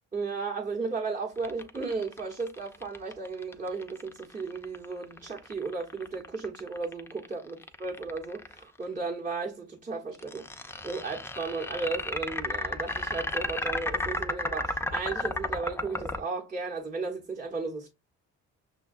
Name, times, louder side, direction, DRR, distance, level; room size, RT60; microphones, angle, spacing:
voice 1, 0.1-17.9, right 4 dB, 25° right, 0.9 m, -35 dB
sound 1, 1.4-8.6 10.2-16.2, left 2 dB, 10° left, 0.4 m, -33 dB
6.1 x 2.2 x 2.4 m
cardioid pair, 90°, 30 cm